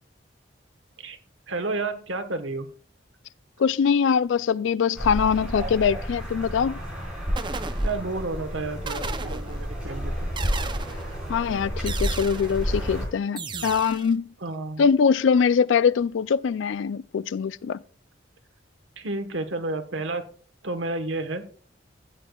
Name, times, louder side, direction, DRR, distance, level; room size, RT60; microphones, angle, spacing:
voice 1, 1.5-2.7 7.8-10.3 14.4-14.8 19.0-20.2 20.6-21.5, right 2 dB, 85° right, 1.2 m, -31 dB
voice 2, 3.6-6.8 11.3-14.3 14.8-17.8, left 6 dB, 85° left, 0.4 m, -23 dB
sound 1, 4.9-13.1, equal, 5° right, 4.8 m, -30 dB
sound 2, 6.8-6.9 7.4-8.3 8.9-9.8 10.4-11.2 11.9-12.7 13.4-14.1, right 4 dB, 25° right, 0.6 m, -35 dB
16.5 x 8.0 x 2.3 m
head